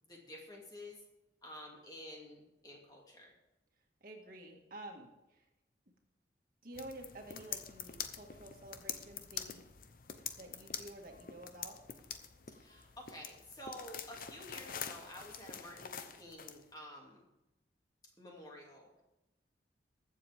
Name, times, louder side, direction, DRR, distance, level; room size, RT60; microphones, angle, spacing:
voice 1, 0.0-1.0 1.4-3.3 12.5-17.2 18.2-18.9, left 1 dB, 20° left, -1 dB, 2.5 m, -51 dB
voice 2, 4.0-5.5 6.6-9.7 10.4-11.8, right 1 dB, 50° right, 1 dB, 1.9 m, -50 dB
sound 1, 6.7-16.6, left 8 dB, 50° left, 0.8 m, -46 dB
22.0 x 7.4 x 3.6 m, 0.98 s
head